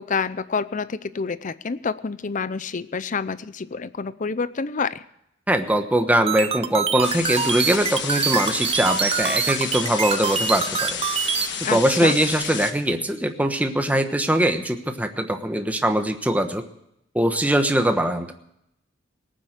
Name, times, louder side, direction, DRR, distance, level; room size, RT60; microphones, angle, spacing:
voice 1, 0.0-5.0 11.6-12.1, left 5 dB, 40° left, 15 dB, 0.6 m, -28 dB
voice 2, 5.5-11.0 11.6-16.6 17.1-18.3, right 1 dB, 10° right, 6 dB, 1.2 m, -22 dB
sound 1, 6.3-11.5, right 7 dB, 30° right, 0.7 m, -24 dB
sound 2, 7.0-12.7, left 7 dB, 65° left, 1.5 m, -31 dB
18.5 x 9.2 x 6.5 m, 0.78 s
head